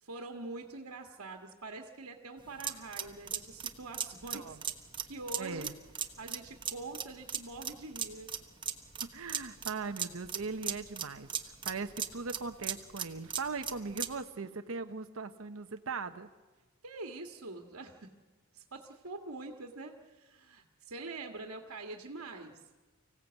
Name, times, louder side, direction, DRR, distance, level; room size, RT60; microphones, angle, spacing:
voice 1, 0.0-4.6 5.1-5.7 6.2-8.3 16.8-18.1 18.5-22.6, right 2 dB, 85° right, 3 dB, 1.7 m, -44 dB
sound 1, 2.4-14.2, right 7 dB, 25° right, 1.1 m, -38 dB
voice 2, 5.4-5.8 9.0-16.3, right 4 dB, 70° right, 8 dB, 0.9 m, -39 dB
25.0 x 16.5 x 8.2 m, 1.3 s
head